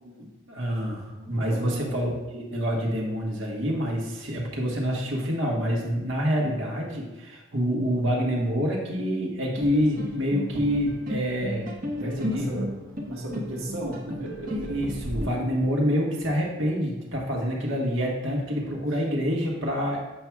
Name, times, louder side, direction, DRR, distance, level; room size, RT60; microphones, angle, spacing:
voice 1, 0.0-11.7 11.9-12.6 14.5-20.0, equal, 65° right, -2 dB, 1.3 m, -27 dB
voice 2, 1.1-2.1 6.4-6.6 12.0-12.7 13.0-14.7 18.6-18.7, right 1 dB, 85° right, -2 dB, 1.6 m, -35 dB
sound 1, 9.6-15.3, left 1 dB, 45° right, 0.9 m, -34 dB
7.7 x 5.9 x 2.3 m, 1.1 s
head